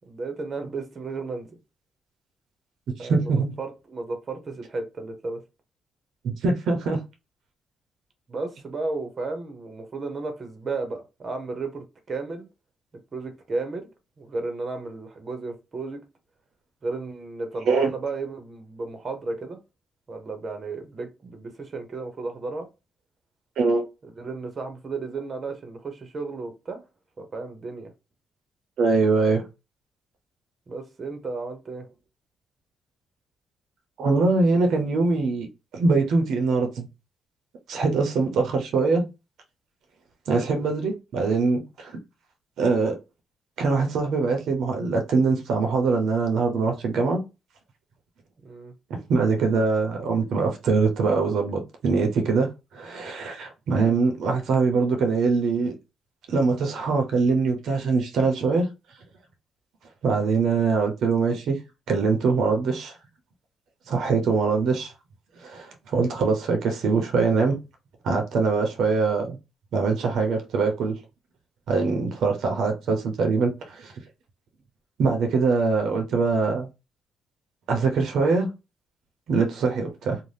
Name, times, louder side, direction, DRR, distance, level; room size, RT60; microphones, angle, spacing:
voice 1, 0.1-1.5 3.0-5.4 8.3-12.5 13.1-13.9 14.2-16.0 16.8-19.6 20.1-22.7 24.0-26.8 27.2-27.9 30.7-31.8 40.4-40.7 48.4-48.7, right 3 dB, 40° right, 0.7 m, -33 dB
voice 2, 3.0-3.5 6.2-7.0 17.7-17.9 23.6-23.8 28.8-29.4 34.0-35.5 35.7-36.9 37.7-39.0 40.3-41.9 42.6-42.9 43.6-47.2 48.9-55.7 56.3-58.7 60.0-61.6 61.9-62.9 63.9-64.9 65.4-67.6 68.0-69.4 69.7-71.0 71.7-73.9 75.0-76.7 77.7-78.5 79.3-80.2, right 4 dB, 75° right, 0.6 m, -23 dB
2.6 x 2.1 x 3.3 m
cardioid pair, 90°, 0 cm